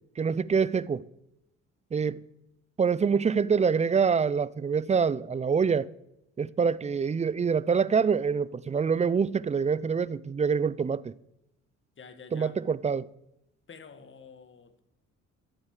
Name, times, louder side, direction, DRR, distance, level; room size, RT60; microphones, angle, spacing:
voice 1, 0.2-1.0 1.9-2.2 2.8-5.9 6.4-11.1 12.3-13.1, right 6 dB, 25° right, 0.4 m, -25 dB
voice 2, 12.0-12.6 13.7-14.8, left 5 dB, 40° left, 1.7 m, -48 dB
12.5 x 8.7 x 6.6 m
cardioid pair, 90°, 30 cm